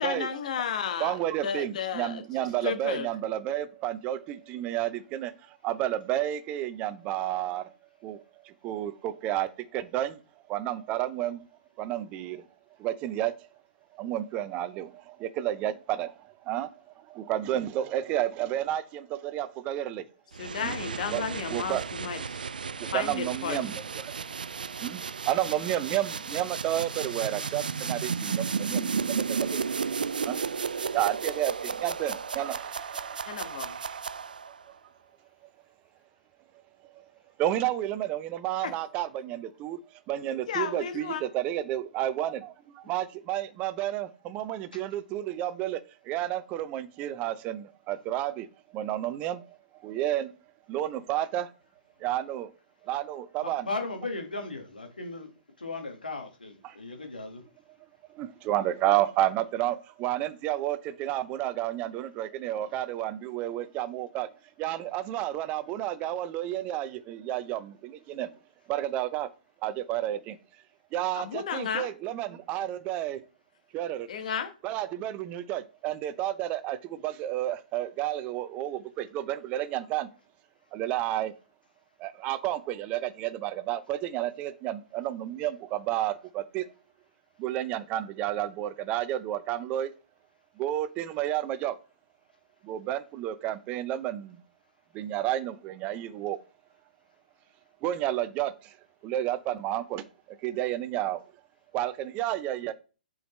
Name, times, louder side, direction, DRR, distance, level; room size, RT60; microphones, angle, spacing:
voice 1, 0.0-1.2 1.4-2.2 2.6-3.1 20.4-22.5 22.9-23.6 33.3-33.8 38.6-38.7 40.5-41.2 71.2-71.9 74.1-74.5, left 7 dB, 55° left, 1.3 m, -33 dB
voice 2, 1.0-5.3 5.6-7.7 8.0-10.2 10.5-11.4 11.8-12.4 12.8-13.3 13.9-16.7 17.0-20.1 20.6-20.7 21.1-21.9 22.9-24.1 24.8-29.7 30.2-30.4 30.9-34.0 37.4-39.8 40.1-45.8 46.0-48.5 48.7-49.6 49.8-50.3 50.7-51.5 52.0-52.5 52.8-53.7 56.6-56.8 58.1-64.3 64.6-68.3 68.7-69.3 69.6-70.4 70.9-73.2 73.7-74.1 74.6-80.1 80.7-81.3 82.0-86.7 87.4-89.9 90.6-91.8 92.6-94.4 94.9-96.4 97.8-98.7 99.0-101.2 101.7-102.7, right 13 dB, 25° right, 0.6 m, -31 dB
Crazy buildup sweep, 20.3-34.6, right 5 dB, 75° right, 0.4 m, -33 dB
voice 3, 53.4-55.3 55.6-57.4, left 3 dB, 80° left, 1.8 m, -36 dB
7.8 x 4.8 x 3.2 m
figure-of-eight pair, 125°, 5 cm